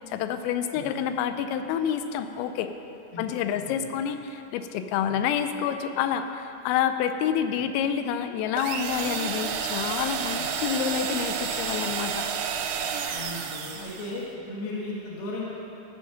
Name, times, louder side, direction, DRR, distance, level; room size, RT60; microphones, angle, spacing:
voice 1, 0.1-2.7 3.2-12.3, left 8 dB, 90° left, 9 dB, 3.3 m, -28 dB
voice 2, 3.6-3.9 5.1-5.2 10.4-10.5 13.1-15.4, left 2 dB, 65° left, -4 dB, 2.7 m, -36 dB
sound 1, 8.6-14.2, right 7 dB, 80° right, 2.8 m, -30 dB
15.0 x 6.2 x 5.8 m, 2.9 s
omnidirectional pair, 5.8 m